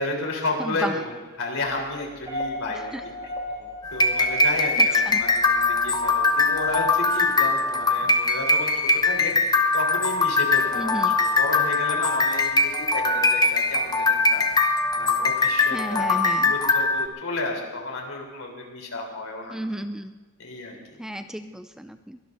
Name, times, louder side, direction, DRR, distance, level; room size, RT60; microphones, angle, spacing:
voice 1, 0.0-3.1 3.6-19.6 20.4-20.8, left 2 dB, 75° left, 0 dB, 3.7 m, -32 dB
voice 2, 0.6-1.0 2.9-3.0 4.8-5.2 10.8-11.2 15.7-16.5 19.5-20.2 21.0-22.2, equal, 5° right, 8 dB, 0.4 m, -33 dB
sound 1, 2.0-6.9, left 1 dB, 20° right, 3.2 m, -37 dB
sound 2, 3.8-17.1, left 3 dB, 20° left, 0.8 m, -22 dB
23.5 x 18.0 x 2.7 m, 1.3 s
head